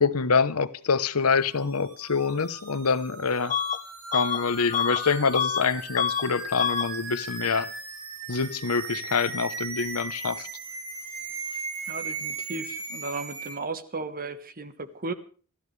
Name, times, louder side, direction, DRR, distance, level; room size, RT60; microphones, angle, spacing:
voice 1, 0.0-3.5 4.1-7.7 8.3-10.5, left 5 dB, 80° left, 0.9 m, -25 dB
sound 1, 1.3-13.6, right 4 dB, 75° right, 3.4 m, -38 dB
Bus / Alarm, 3.5-3.8 4.1-5.7 5.9-6.3 6.6-6.9, left 7 dB, 35° left, 0.8 m, -27 dB
voice 2, 11.8-15.1, right 3 dB, 40° right, 1.3 m, -35 dB
27.5 x 13.0 x 3.3 m
head